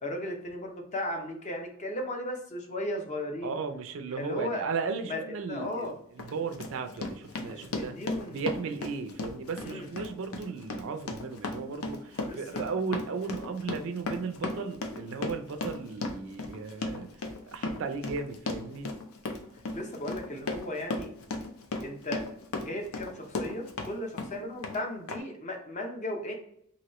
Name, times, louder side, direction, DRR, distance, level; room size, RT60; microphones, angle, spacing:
voice 1, 0.0-3.6 4.2-4.6 5.1-5.2 5.5-5.9 7.5-8.4 9.6-9.9 12.3-12.6 19.7-21.1 21.8-22.2 22.5-26.3, left 1 dB, 35° left, 2 dB, 0.6 m, -36 dB
voice 2, 3.4-8.0 8.3-18.9, right 5 dB, 65° right, 7 dB, 0.4 m, -36 dB
Run, 5.6-5.7 6.2-23.9 24.2-24.8 25.1-25.2, left 3 dB, 75° left, 0.5 m, -36 dB
2.9 x 2.7 x 3.0 m, 0.69 s
head